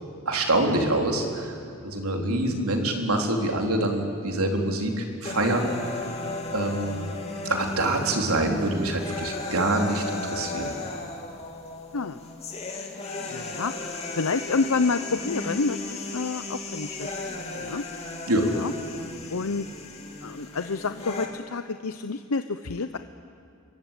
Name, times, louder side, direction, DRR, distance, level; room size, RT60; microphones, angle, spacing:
voice 1, 0.3-1.6 1.8-6.0 6.5-7.1 7.4-10.7 18.3-18.5, right 1 dB, 85° right, 2 dB, 3.6 m, -25 dB
voice 2, 2.1-2.7 11.9-12.2 13.3-13.7 14.1-17.1 17.6-17.8 18.5-18.7 19.3-19.7 20.2-23.0, left 4 dB, 85° left, 9 dB, 0.8 m, -28 dB
sound 1, 5.3-21.3, left 3 dB, 30° left, 2.9 m, -35 dB
26.5 x 23.0 x 9.0 m, 2.4 s
head